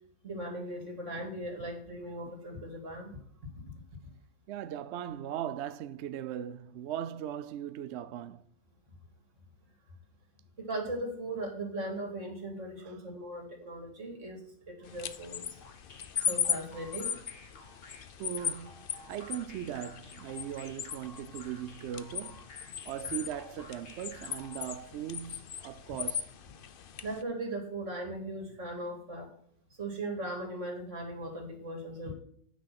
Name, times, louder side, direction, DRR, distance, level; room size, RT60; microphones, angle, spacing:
voice 1, 0.2-3.1 3.4-3.5 10.6-15.6 16.3-17.3 21.0-21.4 27.0-29.4 29.7-32.1, right 1 dB, 50° right, 2.9 m, -38 dB
voice 2, 4.5-8.4 12.8-13.0 18.2-22.5 22.8-26.3, right 10 dB, 70° right, 0.6 m, -39 dB
sound 1, 14.8-27.2, left 8 dB, 55° left, 0.6 m, -38 dB
sound 2, 15.6-24.8, left 2 dB, 40° left, 1.6 m, -53 dB
9.5 x 5.9 x 5.9 m
omnidirectional pair, 1.7 m